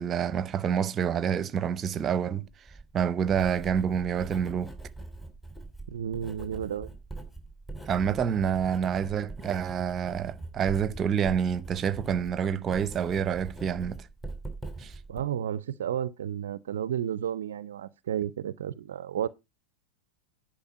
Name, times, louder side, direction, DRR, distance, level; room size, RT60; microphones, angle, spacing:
voice 1, 0.0-2.4 2.9-4.7 7.9-14.1 14.8-14.9, right 8 dB, 25° right, 0.8 m, -28 dB
Writing, 2.5-15.2, right 2 dB, 5° left, 2.7 m, -42 dB
voice 2, 5.9-6.9 15.1-19.3, right 9 dB, 60° right, 0.4 m, -32 dB
10.5 x 4.9 x 7.2 m
figure-of-eight pair, 90°, 0 cm